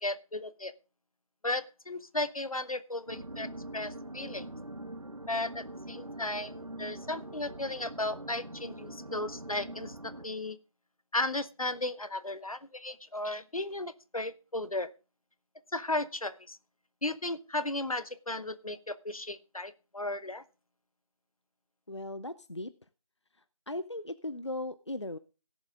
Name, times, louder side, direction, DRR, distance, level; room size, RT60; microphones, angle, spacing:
voice 1, 0.0-0.7 1.4-4.5 5.3-10.6 11.1-14.9 15.7-16.6 17.0-20.4, left 2 dB, 75° left, 15 dB, 0.9 m, -35 dB
sound 1, 3.1-10.3, right 1 dB, 90° right, 1.3 m, -43 dB
voice 2, 21.9-22.7 23.7-25.2, left 1 dB, 55° left, 15 dB, 0.5 m, -37 dB
17.0 x 7.2 x 3.6 m, 0.32 s
figure-of-eight pair, 180°, 18 cm